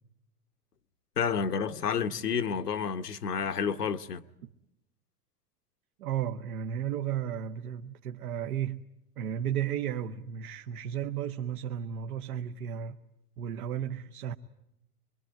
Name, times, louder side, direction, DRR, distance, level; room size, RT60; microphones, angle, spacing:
voice 1, 1.2-4.2, left 6 dB, 90° left, 1.2 m, -30 dB
voice 2, 6.0-8.8 9.2-13.0 13.4-14.3, right 9 dB, 70° right, 1.2 m, -34 dB
24.5 x 23.0 x 9.2 m
hypercardioid pair, 95°, 46 cm